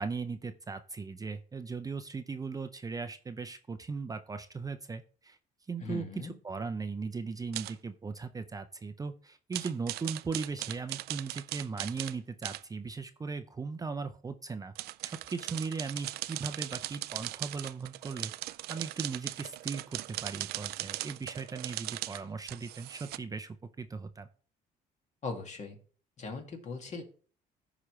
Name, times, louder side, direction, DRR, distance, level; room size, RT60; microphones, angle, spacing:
voice 1, 0.0-5.4 5.7-14.7 15.0-18.3 18.7-24.3, right 4 dB, 20° right, 8 dB, 0.6 m, -38 dB
voice 2, 5.8-6.3 25.2-25.8 26.2-27.0, left 4 dB, 45° left, 3 dB, 2.1 m, -39 dB
sound 1, 7.5-7.7 9.5-12.2 12.4-12.6 14.8-23.2, right 17 dB, 75° right, 0.4 m, -39 dB
14.5 x 5.0 x 3.2 m, 0.42 s
cardioid pair, 100°, 16 cm